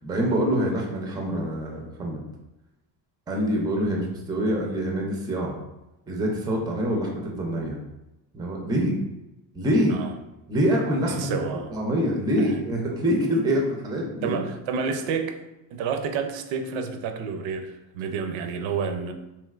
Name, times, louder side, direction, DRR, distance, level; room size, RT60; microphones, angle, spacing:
voice 1, 0.0-2.2 3.3-5.6 6.1-7.8 8.3-9.0 9.5-10.0 10.5-14.4, equal, 10° right, 0 dB, 0.4 m, -25 dB
voice 2, 11.0-11.7 12.4-12.5 14.2-15.4 15.7-19.1, right 5 dB, 65° right, 7 dB, 0.5 m, -29 dB
3.2 x 2.8 x 2.3 m, 0.97 s
cardioid pair, 105°, 50 cm